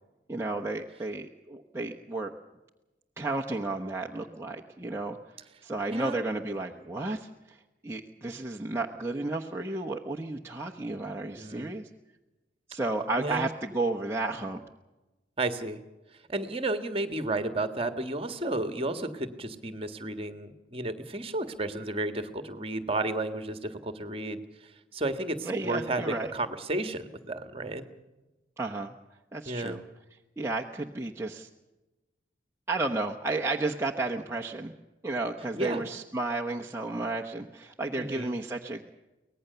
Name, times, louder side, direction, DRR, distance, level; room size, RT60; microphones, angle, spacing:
voice 1, 0.3-2.3 3.2-5.2 5.6-7.6 7.8-11.9 12.7-14.6 25.4-26.3 28.6-28.9 29.3-29.8 30.4-31.5 32.7-34.7 35.0-38.9, right 2 dB, 15° right, 0 dB, 1.0 m, -32 dB
voice 2, 5.9-6.2 11.3-11.7 13.2-13.5 15.4-15.8 16.3-27.8 29.5-29.8 35.5-35.8 38.0-38.3, right 2 dB, 30° right, 10 dB, 1.7 m, -32 dB
24.0 x 19.0 x 6.9 m, 1.1 s
head